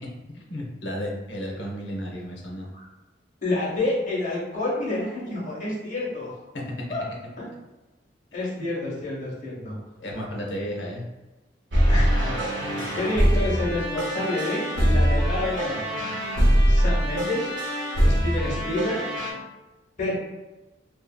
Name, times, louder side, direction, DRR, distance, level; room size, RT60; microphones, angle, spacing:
voice 1, 0.3-2.7 6.5-6.6 8.6-8.7 10.0-11.0, equal, 70° left, -1 dB, 0.7 m, -33 dB
voice 2, 3.4-6.3 6.9-7.0 7.4-7.5 8.3-9.8 11.9-12.4 12.9-16.1 16.7-17.5 18.0-18.9 20.0-20.1, left 2 dB, 45° left, -5 dB, 1.0 m, -29 dB
sound 1, 11.7-19.3, equal, 70° right, 0.7 m, -23 dB
2.7 x 2.7 x 2.2 m, 1.1 s
head